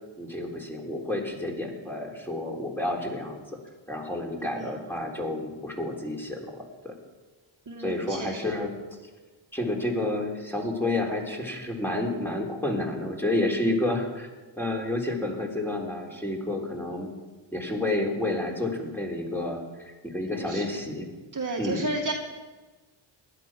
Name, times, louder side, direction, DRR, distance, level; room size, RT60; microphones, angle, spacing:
voice 1, 0.2-3.4 3.9-6.9 7.8-8.7 9.5-14.3 14.6-17.1 17.5-21.1 21.6-21.9, left 1 dB, 5° left, 0 dB, 3.6 m, -30 dB
voice 2, 4.4-4.8 7.7-8.4 20.5-20.6 21.3-22.1, right 2 dB, 40° right, 1 dB, 2.2 m, -32 dB
16.5 x 11.5 x 6.1 m, 1.3 s
cardioid pair, 80°, 50 cm